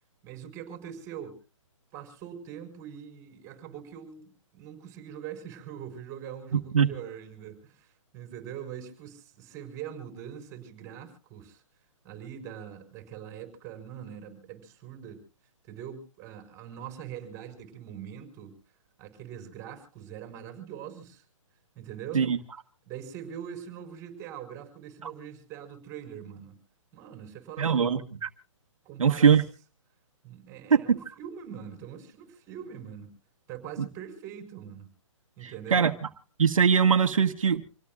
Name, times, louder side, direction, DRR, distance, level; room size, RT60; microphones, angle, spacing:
voice 1, 0.2-1.3 1.9-7.9 8.1-11.6 12.0-15.2 15.7-18.6 19.0-21.2 21.8-22.3 22.9-26.5 26.9-27.9 28.9-29.4 30.2-33.1 33.5-34.9 35.4-35.9, right 9 dB, 20° right, 5 dB, 5.3 m, -42 dB
voice 2, 27.6-28.3 29.0-29.4 30.7-31.0 35.4-35.9 36.4-37.6, right 6 dB, 80° right, 5 dB, 1.7 m, -22 dB
27.5 x 17.5 x 2.5 m, 0.34 s
hypercardioid pair, 160°, 17 cm